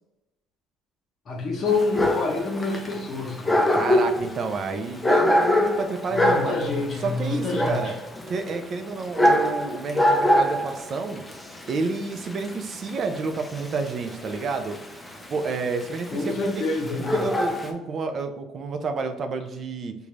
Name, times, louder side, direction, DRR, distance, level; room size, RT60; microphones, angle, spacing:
voice 1, 1.3-3.6 6.1-7.9 16.1-17.2, left 3 dB, 45° left, -2 dB, 0.9 m, -27 dB
Dog, 1.7-17.7, left 1 dB, 10° left, 0.5 m, -25 dB
voice 2, 3.7-6.5 7.0-7.9 8.3-11.2 11.7-14.8 15.3-16.6 17.1-20.0, right 4 dB, 45° right, 7 dB, 0.4 m, -30 dB
3.8 x 2.3 x 3.1 m, 0.95 s
cardioid pair, 100°, 0 cm